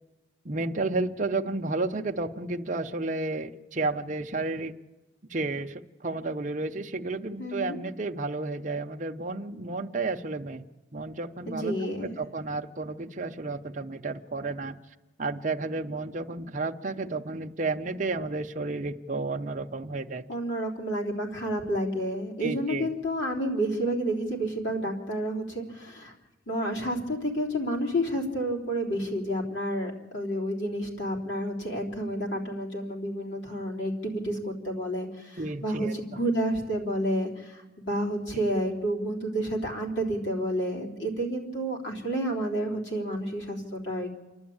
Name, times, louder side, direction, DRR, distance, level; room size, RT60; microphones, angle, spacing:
voice 1, 0.4-4.7 5.3-10.7 10.9-11.7 12.0-14.8 15.2-20.2 22.4-22.9 35.4-36.2 38.3-38.4, right 3 dB, 40° right, 4 dB, 0.7 m, -32 dB
voice 2, 7.4-7.8 11.5-12.2 20.3-26.1 26.5-44.1, right 1 dB, 60° left, -1 dB, 3.6 m, -30 dB
28.5 x 11.5 x 8.7 m, 1.1 s
head